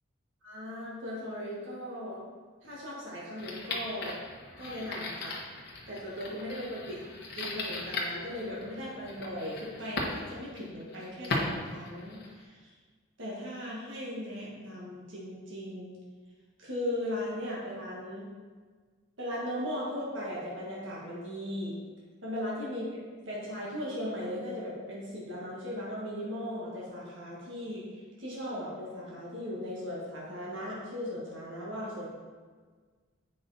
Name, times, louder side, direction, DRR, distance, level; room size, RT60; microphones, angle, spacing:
voice 1, 0.4-2.2 2.6-4.2 4.6-5.4 5.9-7.0 7.3-12.7 13.2-16.0 16.6-18.3 19.2-21.8 22.2-32.1, left 1 dB, 70° right, -5 dB, 1.8 m, -38 dB
sound 1, 3.4-12.4, left 2 dB, 55° left, 1.3 m, -38 dB
8.1 x 5.4 x 4.1 m, 1.5 s
head